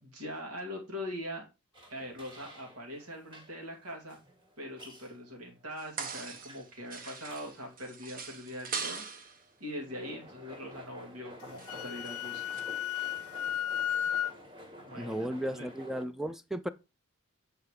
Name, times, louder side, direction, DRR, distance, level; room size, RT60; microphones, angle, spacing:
voice 1, 0.0-1.4 1.9-4.2 4.6-9.3 9.6-12.6 14.8-15.7, equal, 80° right, 2.5 m, -42 dB
sound 1, 1.7-16.1, equal, 20° right, 2.1 m, -52 dB
sound 2, 5.8-6.7 6.9-9.4 11.6-12.1 12.5-12.6, right 5 dB, 40° right, 1.0 m, -40 dB
Wind instrument woodwind instrument, 11.4-14.3, left 10 dB, 75° left, 0.5 m, -34 dB
voice 2, 15.0-16.7, right 1 dB, ahead, 0.4 m, -35 dB
8.3 x 4.8 x 4.8 m
head